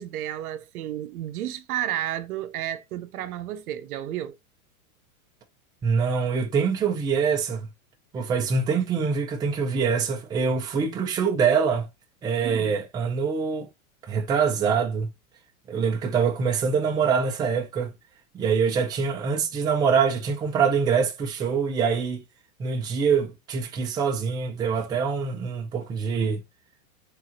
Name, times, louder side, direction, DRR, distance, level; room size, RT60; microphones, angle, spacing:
voice 1, 0.0-4.3 12.4-12.8, right 12 dB, 85° right, 0.8 m, -32 dB
voice 2, 5.8-7.7 8.1-11.9 12.2-13.7 14.0-15.1 15.7-17.9 18.3-22.2 22.6-26.4, right 6 dB, 10° right, 0.5 m, -24 dB
3.7 x 2.4 x 4.3 m
supercardioid pair, 150°, 43 cm